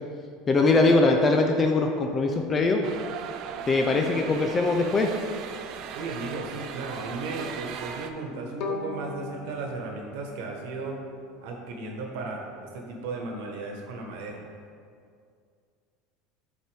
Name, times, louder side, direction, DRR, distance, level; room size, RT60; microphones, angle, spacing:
voice 1, 0.5-2.8 3.7-5.1, left 3 dB, 25° left, 3 dB, 0.4 m, -22 dB
sound 1, 2.8-8.1, right 7 dB, 50° right, 0.4 m, -38 dB
voice 2, 5.9-11.0 11.4-14.4, right 3 dB, 75° right, 1 dB, 1.2 m, -35 dB
Bowed string instrument, 8.6-11.7, left 4 dB, 60° left, 0.8 m, -38 dB
7.4 x 4.6 x 3.4 m, 2.3 s
supercardioid pair, 140°, 0 cm